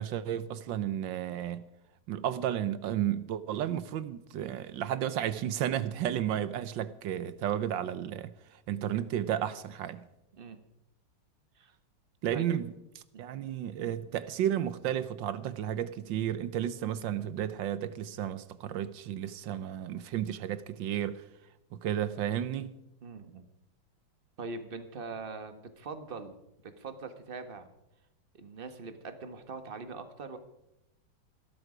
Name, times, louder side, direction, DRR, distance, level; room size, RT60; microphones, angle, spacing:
voice 1, 0.0-1.7 2.1-10.0 12.2-12.7 13.2-21.2 21.7-22.8, right 10 dB, 70° right, 1.3 m, -33 dB
voice 2, 23.0-23.4 24.4-26.4 26.6-27.7 28.3-30.4, right 4 dB, 30° right, 1.2 m, -42 dB
17.0 x 12.5 x 5.0 m
omnidirectional pair, 2.3 m